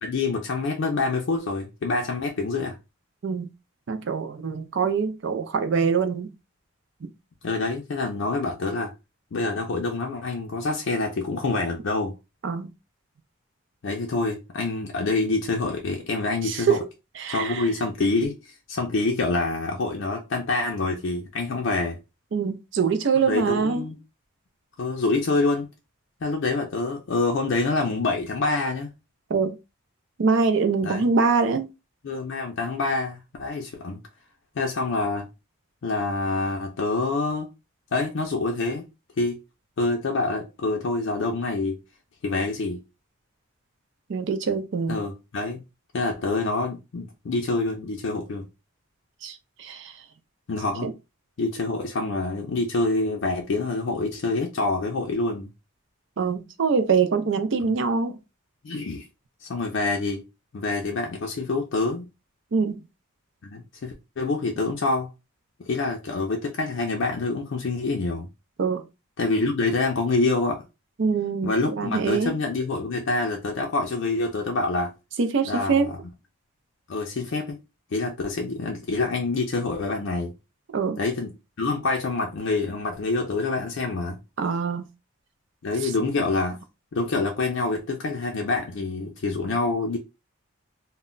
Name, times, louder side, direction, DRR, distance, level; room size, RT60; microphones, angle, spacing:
voice 1, 0.0-2.8 7.4-8.9 9.3-12.1 13.8-16.8 17.3-22.0 23.2-24.0 24.8-25.7 26.2-28.9 30.8-31.1 32.0-34.0 34.6-35.3 35.8-37.5 37.9-38.9 39.2-39.4 39.8-41.8 42.2-42.8 44.9-45.6 45.9-48.4 50.5-50.9 51.4-55.5 58.6-59.0 59.4-60.2 60.5-62.1 63.4-65.1 65.7-68.3 69.2-70.6 71.4-74.9 75.5-76.0 76.9-77.6 77.9-80.3 81.0-84.2 85.6-86.6 86.9-90.0, left 3 dB, 60° left, 0.4 m, -26 dB
voice 2, 3.9-6.3 7.0-7.1 12.4-12.7 16.4-16.8 17.2-17.7 22.3-23.8 29.3-29.6 30.2-31.7 44.1-45.0 49.2-49.9 50.8-50.9 56.2-58.1 62.5-62.8 68.6-68.8 71.0-72.3 75.2-75.9 80.7-81.0 84.4-84.9 85.8-85.9, right 5 dB, 55° right, 0.4 m, -24 dB
2.1 x 2.1 x 3.7 m
head